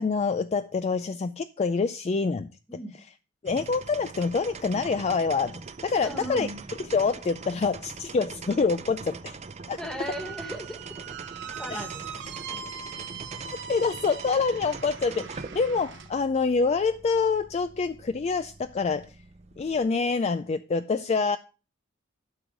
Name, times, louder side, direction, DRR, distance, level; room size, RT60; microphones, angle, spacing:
voice 1, 0.0-2.5 3.4-6.5 6.9-9.4 9.7-9.8 11.7-11.8 13.7-19.1 19.6-21.4, left 4 dB, 30° left, 0.3 m, -26 dB
sound 1, 3.4-19.9, right 4 dB, 35° right, 0.6 m, -42 dB
voice 2, 6.0-6.6 9.8-11.0 11.6-12.1, equal, 5° left, 1.6 m, -37 dB
Squeak, 10.0-16.1, right 7 dB, 60° right, 0.9 m, -41 dB
12.0 x 4.7 x 5.1 m
head